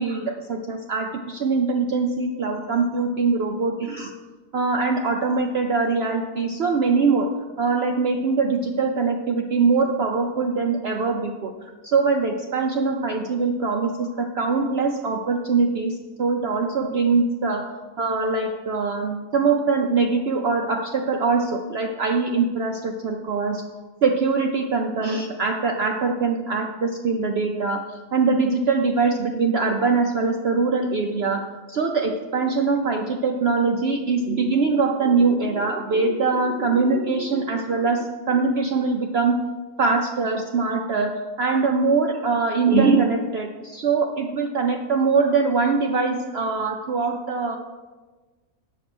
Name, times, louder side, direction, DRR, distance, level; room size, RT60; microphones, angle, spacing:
voice 1, 0.0-4.2 4.5-7.3 7.6-23.6 24.0-39.4 39.8-47.6, right 4 dB, 60° right, 3 dB, 0.7 m, -23 dB
7.8 x 6.3 x 6.1 m, 1.3 s
omnidirectional pair, 1.5 m